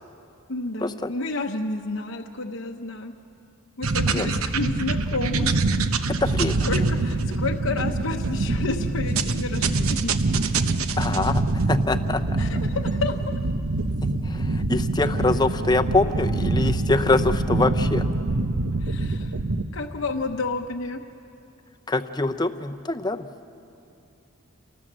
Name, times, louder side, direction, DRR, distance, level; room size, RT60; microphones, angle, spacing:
voice 1, 0.5-3.1 3.8-5.5 6.6-10.1 12.4-13.3 18.8-19.4 19.7-21.0, left 3 dB, 65° left, 3 dB, 0.9 m, -30 dB
sound 1, 3.8-19.7, right 2 dB, 75° right, 0.9 m, -25 dB
voice 2, 6.2-6.7 11.0-12.4 14.0-18.1 21.9-23.3, left 2 dB, 20° left, 8 dB, 0.6 m, -24 dB
28.5 x 19.0 x 7.5 m, 2.7 s
head